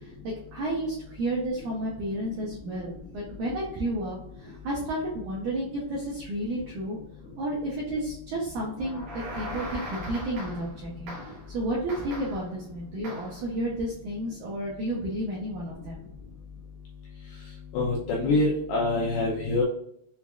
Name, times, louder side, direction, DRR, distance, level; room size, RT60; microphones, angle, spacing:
voice 1, 0.2-7.0 7.4-9.0 9.3-11.1 11.5-16.0, right 1 dB, 85° right, -4 dB, 1.7 m, -31 dB
sound 1, 8.8-10.8 11.1-11.5 11.9-12.5 13.0-13.4, equal, 70° right, 1.9 m, -39 dB
voice 2, 17.7-19.6, left 2 dB, 85° left, -3 dB, 2.0 m, -25 dB
7.1 x 2.4 x 2.4 m, 0.71 s
omnidirectional pair, 4.7 m